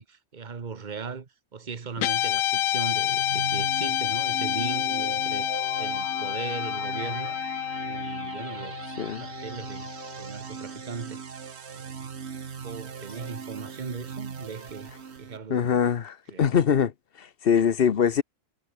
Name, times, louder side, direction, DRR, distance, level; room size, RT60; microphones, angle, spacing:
voice 1, 0.0-7.4 7.9-9.9 10.2-11.2 11.7-12.1 12.6-14.9 15.2-15.7 16.3-16.5, right 5 dB, 35° right, 1.4 m, -38 dB
Guitar, 2.0-10.4, left 13 dB, 85° left, 1.0 m, -29 dB
sound 1, 2.8-15.4, right 6 dB, 55° right, 1.6 m, -39 dB
voice 2, 15.5-16.9 17.2-18.2, left 7 dB, 50° left, 1.0 m, -23 dB
omnidirectional pair, 1.4 m